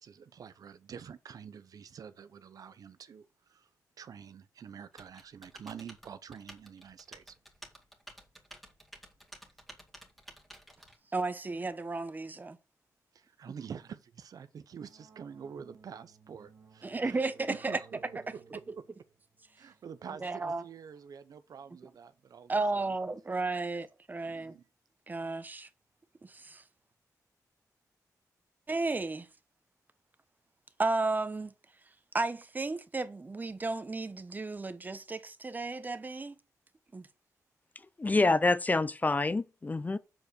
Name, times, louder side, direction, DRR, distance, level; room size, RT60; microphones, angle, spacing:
voice 1, 0.0-3.7 4.0-7.3 13.1-17.2 17.5-18.9 19.6-22.9 24.2-24.7, right 7 dB, 70° right, 0.8 m, -47 dB
Typing, 5.0-11.0, equal, ahead, 2.2 m, -52 dB
voice 2, 11.1-12.6 16.8-17.8 20.2-20.6 22.5-24.5 25.1-25.7 26.2-26.6 28.7-29.3 30.8-31.5 32.1-36.3 36.9-37.1, right 3 dB, 30° right, 1.0 m, -33 dB
sound 1, 14.8-22.9, right 5 dB, 55° right, 2.0 m, -61 dB
voice 3, 38.0-40.0, left 3 dB, 25° left, 0.6 m, -27 dB
7.7 x 4.6 x 6.7 m
cardioid pair, 100°, 6 cm